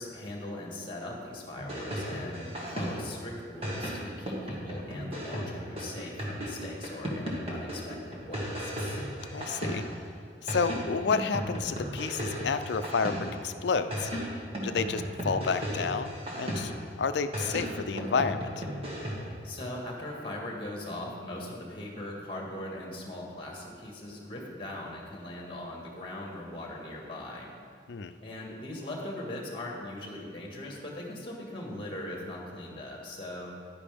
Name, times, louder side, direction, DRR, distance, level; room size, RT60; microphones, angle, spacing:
voice 1, 0.0-9.0 19.4-27.5 28.2-33.5, left 1 dB, 30° left, -1 dB, 1.8 m, -40 dB
sound 1, 1.6-3.2 3.6-10.1 10.5-13.5 13.9-16.9 17.3-19.4, equal, 35° right, 1.7 m, -35 dB
voice 2, 9.3-9.8 10.4-13.2 13.4-14.1 14.6-16.7 17.0-18.5 27.9-28.1, left 5 dB, 75° left, 11 dB, 0.5 m, -30 dB
11.0 x 9.8 x 3.5 m, 2.2 s
head